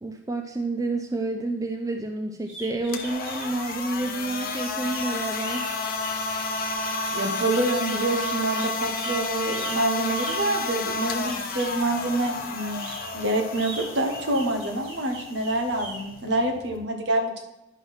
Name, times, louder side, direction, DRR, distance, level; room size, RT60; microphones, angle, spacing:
voice 1, 0.0-5.7, right 2 dB, 15° right, 4 dB, 0.5 m, -29 dB
sound 1, 2.4-11.8 12.6-16.0, right 2 dB, 85° right, 3.1 m, -41 dB
sound 2, 2.8-16.8, left 3 dB, 45° left, 0.9 m, -31 dB
voice 2, 7.1-12.8 13.1-17.4, right 1 dB, 60° right, 3 dB, 1.4 m, -26 dB
11.0 x 3.8 x 6.1 m, 0.92 s
head